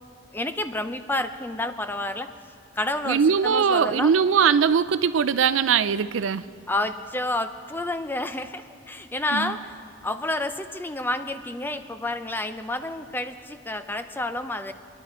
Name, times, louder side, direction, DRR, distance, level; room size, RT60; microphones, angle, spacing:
voice 1, 0.3-2.3 2.8-4.1 6.7-9.7 10.0-14.7, left 2 dB, 10° left, 9 dB, 0.5 m, -29 dB
voice 2, 3.1-6.4 9.3-9.5, right 6 dB, 85° right, 14 dB, 0.5 m, -21 dB
25.0 x 10.5 x 4.3 m, 2.3 s
head